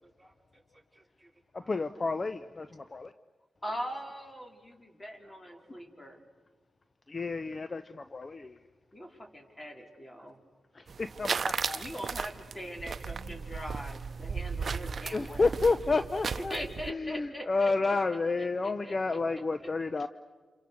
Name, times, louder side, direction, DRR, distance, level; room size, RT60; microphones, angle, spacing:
voice 1, 0.0-1.8 5.2-5.8 9.2-9.3 10.2-10.3 11.1-11.2, right 1 dB, 5° right, -1 dB, 5.2 m, -64 dB
voice 2, 1.5-3.1 7.1-8.6 10.7-11.8 15.1-16.5 16.9-20.1, left 3 dB, 40° left, 11 dB, 0.9 m, -30 dB
voice 3, 3.6-6.2 8.9-10.4 11.7-15.7 16.4-18.0 18.4-19.2, equal, 20° left, 2 dB, 4.8 m, -41 dB
sound 1, 10.9-16.9, right 5 dB, 60° right, 0.8 m, -36 dB
30.0 x 27.5 x 6.6 m, 1.4 s
cardioid pair, 50°, 0 cm